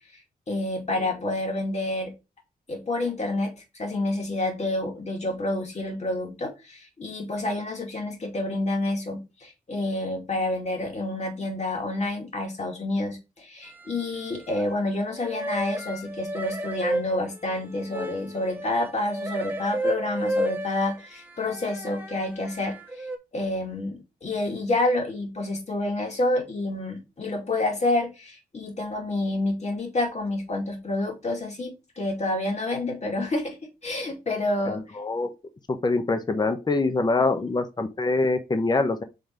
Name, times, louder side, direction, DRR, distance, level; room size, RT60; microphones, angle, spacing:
voice 1, 0.5-2.1 2.7-23.1 23.3-33.6 33.8-34.8 37.4-37.5, left 2 dB, 45° left, 2.4 m, -28 dB
sound 1, 13.6-14.8 15.1-23.2, right 1 dB, 15° right, 1.4 m, -33 dB
voice 2, 35.0-35.3 35.7-39.0, left 3 dB, 25° left, 0.8 m, -24 dB
5.2 x 3.9 x 4.6 m
cardioid pair, 75°, 16 cm